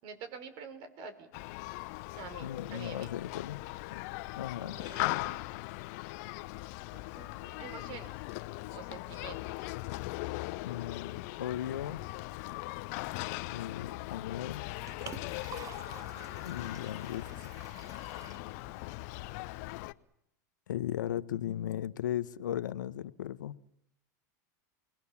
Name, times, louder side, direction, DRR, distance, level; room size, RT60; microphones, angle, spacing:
voice 1, 0.0-1.3 2.2-3.1 4.6-5.5 6.9-8.1 8.7-9.7, right 6 dB, 55° right, 5.0 m, -47 dB
Human group actions, 1.3-19.9, left 21 dB, 65° left, 0.9 m, -39 dB
voice 2, 2.4-3.6 3.9-4.0 4.4-4.8 10.6-12.0 13.5-14.7 16.4-17.6 20.7-23.6, left 11 dB, 90° left, 1.0 m, -37 dB
Liquid, 14.5-19.5, right 7 dB, 35° right, 1.3 m, -50 dB
30.0 x 21.5 x 7.2 m
hypercardioid pair, 105°, 10 cm